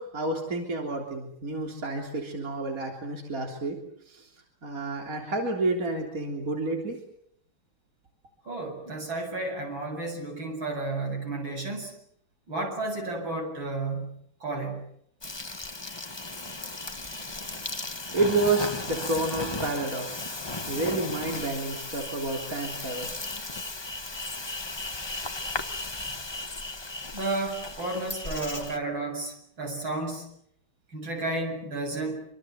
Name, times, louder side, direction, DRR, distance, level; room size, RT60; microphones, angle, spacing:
voice 1, 0.0-3.8 4.1-4.3 4.6-7.0 18.1-20.2 20.7-23.1, right 2 dB, 40° right, 1 dB, 4.0 m, -29 dB
voice 2, 8.5-11.9 12.5-14.8 27.1-30.2 30.9-32.3, right 2 dB, 70° right, 3 dB, 8.3 m, -32 dB
Insect, 15.2-28.8, left 2 dB, 15° left, 1.0 m, -35 dB
27.0 x 25.0 x 8.1 m, 0.71 s
omnidirectional pair, 2.2 m